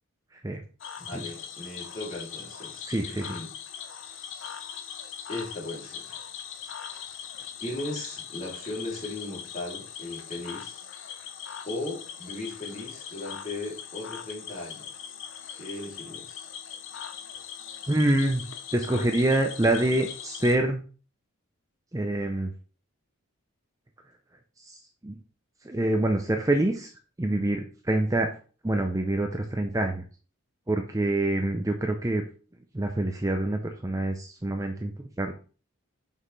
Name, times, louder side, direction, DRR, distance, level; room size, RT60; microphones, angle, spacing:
Cricket / Frog, 0.8-20.6, left 8 dB, 60° left, 0.7 m, -41 dB
voice 1, 1.0-3.5 5.3-6.2 7.6-10.9 11.6-15.1 15.6-16.5, left 2 dB, 30° left, -4 dB, 2.7 m, -37 dB
voice 2, 2.8-3.3 17.9-18.4 18.7-20.8 21.9-22.5 24.7-24.8 25.0-25.2 25.6-26.9 27.2-28.3 28.6-30.0 30.7-32.2 32.7-34.9 35.2-35.3, right 1 dB, 15° right, 4 dB, 0.5 m, -26 dB
6.1 x 5.4 x 3.2 m, 0.38 s
head